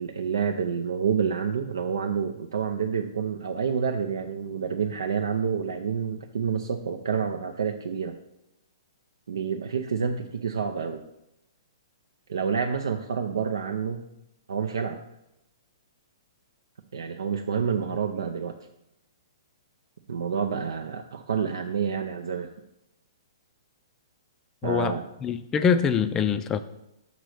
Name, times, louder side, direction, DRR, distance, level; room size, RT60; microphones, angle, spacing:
voice 1, 0.0-8.1 9.3-11.0 12.3-14.0 14.5-15.0 16.9-18.6 20.1-22.5 24.6-25.1, right 6 dB, 65° right, 4 dB, 0.5 m, -28 dB
voice 2, 24.6-25.0 25.2-26.6, left 6 dB, 20° left, 12 dB, 0.4 m, -24 dB
6.5 x 4.0 x 6.4 m, 0.87 s
figure-of-eight pair, 120°, 2 cm